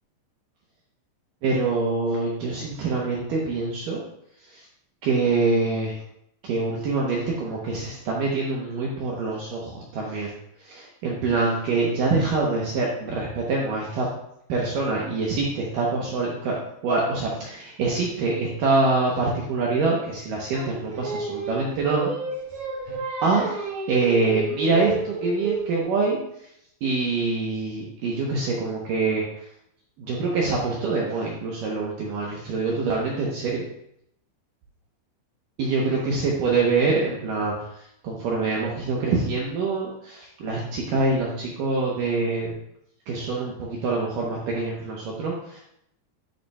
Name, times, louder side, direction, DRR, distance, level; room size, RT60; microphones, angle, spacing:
voice 1, 1.4-4.0 4.5-4.6 5.0-5.9 6.4-10.3 10.6-14.1 14.5-16.5 16.8-22.1 23.2-23.5 23.9-26.2 26.8-29.2 30.0-33.6 35.6-37.5 38.0-42.6 43.1-45.6, right 3 dB, 80° right, -3 dB, 1.9 m, -25 dB
Singing, 20.5-25.7, right 3 dB, 55° right, 3.6 m, -31 dB
11.0 x 7.0 x 2.3 m, 0.75 s
omnidirectional pair, 5.3 m